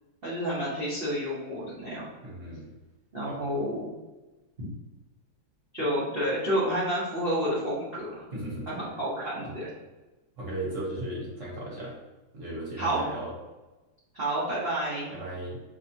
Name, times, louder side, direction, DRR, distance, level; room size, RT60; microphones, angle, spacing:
voice 1, 0.2-2.0 3.1-3.9 5.7-8.2 8.7-9.7 12.8-13.0 14.1-15.1, equal, 85° right, -9 dB, 0.5 m, -29 dB
voice 2, 2.2-2.7 3.3-3.4 8.3-8.7 9.4-9.5 10.4-12.0 12.3-13.3 15.1-15.6, right 1 dB, 50° right, -4 dB, 1.0 m, -36 dB
5.3 x 2.2 x 2.7 m, 1.1 s
omnidirectional pair, 2.3 m